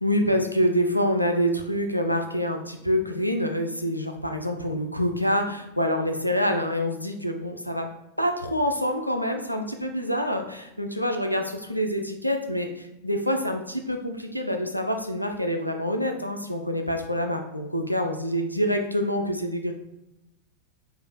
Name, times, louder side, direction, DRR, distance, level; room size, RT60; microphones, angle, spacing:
voice 1, 0.0-7.9 8.2-19.7, equal, 90° left, 5 dB, 0.5 m, -26 dB
4.9 x 2.6 x 4.2 m, 0.89 s
figure-of-eight pair, 90°, 0 cm